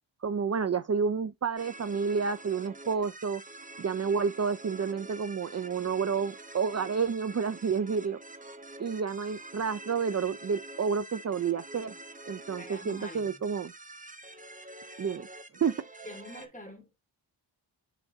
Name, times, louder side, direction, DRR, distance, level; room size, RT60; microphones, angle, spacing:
voice 1, 0.2-3.4 3.8-8.2 8.8-11.9 12.3-13.7 15.0-15.3 15.6-15.8, right 6 dB, 35° right, 0.4 m, -30 dB
sound 1, 1.6-16.5, right 2 dB, 15° right, 0.8 m, -46 dB
voice 2, 12.6-13.4 16.0-17.0, left 1 dB, 15° left, 2.5 m, -46 dB
9.3 x 3.9 x 2.6 m
wide cardioid pair, 70°, 47 cm